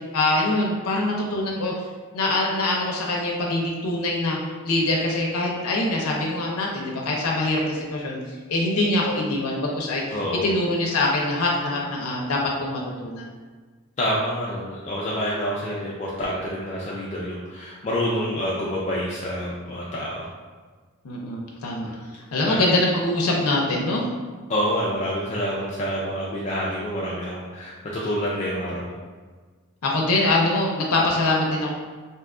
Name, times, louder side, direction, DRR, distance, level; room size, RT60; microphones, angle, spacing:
voice 1, 0.1-1.7 2.1-4.4 4.6-8.2 8.5-10.2 10.4-13.3 21.0-21.9 22.3-24.0 29.8-31.7, left 2 dB, 85° left, -2 dB, 0.5 m, -23 dB
voice 2, 10.1-10.5 14.0-20.3 21.9-22.0 22.4-22.6 24.5-28.9, equal, 30° left, -5 dB, 0.3 m, -27 dB
2.7 x 2.3 x 3.6 m, 1.4 s
head